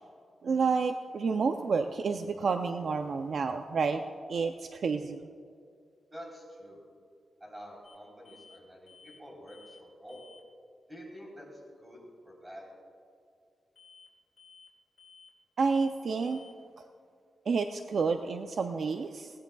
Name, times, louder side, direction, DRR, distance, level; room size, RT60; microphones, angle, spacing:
voice 1, 0.4-4.0 4.3-5.2 15.6-16.4 17.5-19.3, right 5 dB, 55° right, 6 dB, 0.4 m, -29 dB
voice 2, 6.1-6.8 7.4-10.2 10.9-12.0 12.3-12.7, equal, 10° right, -3 dB, 3.6 m, -48 dB
sound 1, 7.8-8.0 8.2-8.6 8.9-9.2 9.5-9.8 10.1-10.4 13.8-14.1 14.4-14.7 15.0-15.3 15.6-15.9 16.2-16.5, left 5 dB, 50° left, 4.0 m, -56 dB
19.5 x 17.5 x 2.3 m, 2.3 s
wide cardioid pair, 175°, 0 cm